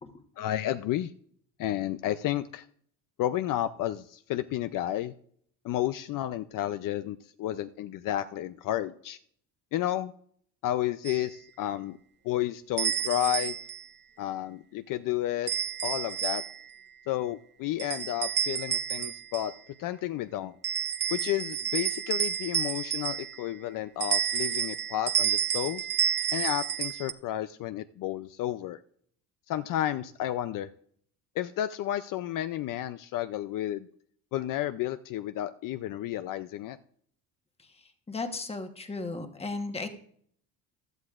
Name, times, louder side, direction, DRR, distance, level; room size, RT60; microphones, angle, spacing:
voice 1, 0.4-1.1 1.6-2.7 3.2-5.1 5.6-9.2 9.7-10.1 10.6-12.0 12.2-13.5 14.2-15.5 15.8-16.4 17.1-19.5 19.8-20.5 21.1-25.9 26.3-28.8 29.5-30.7 31.4-33.9 34.3-36.8, left 13 dB, 60° left, 11 dB, 0.5 m, -31 dB
sound 1, 11.0-11.3 12.8-13.8 15.5-16.7 17.8-19.6 20.6-23.5 24.0-27.1, right 9 dB, 30° right, 0.5 m, -30 dB
voice 2, 38.1-39.9, left 3 dB, 15° left, 6 dB, 1.2 m, -35 dB
16.0 x 12.0 x 2.4 m, 0.62 s
cardioid pair, 130°, 36 cm